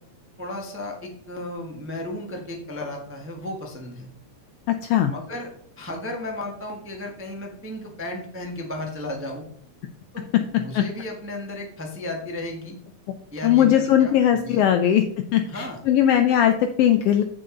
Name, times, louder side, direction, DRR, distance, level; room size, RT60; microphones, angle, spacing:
voice 1, 0.4-4.1 5.0-5.5 5.8-9.5 10.1-10.3 10.5-12.8 13.3-14.7 15.4-15.8, left 1 dB, 20° right, 1 dB, 0.3 m, -34 dB
voice 2, 4.7-5.1 10.7-10.8 13.4-15.0 15.3-17.2, left 10 dB, 85° left, 8 dB, 1.3 m, -19 dB
7.9 x 7.8 x 3.8 m, 0.64 s
omnidirectional pair, 3.4 m